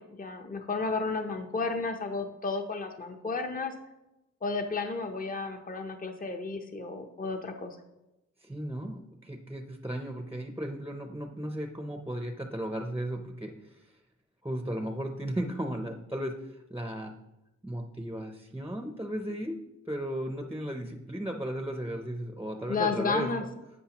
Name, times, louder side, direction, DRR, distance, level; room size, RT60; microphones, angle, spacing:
voice 1, 0.0-3.7 4.4-7.8 22.7-23.4, left 4 dB, 30° left, 5 dB, 0.8 m, -32 dB
voice 2, 8.4-14.0 14.4-17.2 17.6-19.6 19.9-23.5, right 1 dB, 10° right, 5 dB, 0.6 m, -35 dB
11.5 x 7.8 x 2.9 m, 0.95 s
wide cardioid pair, 110°, 30 cm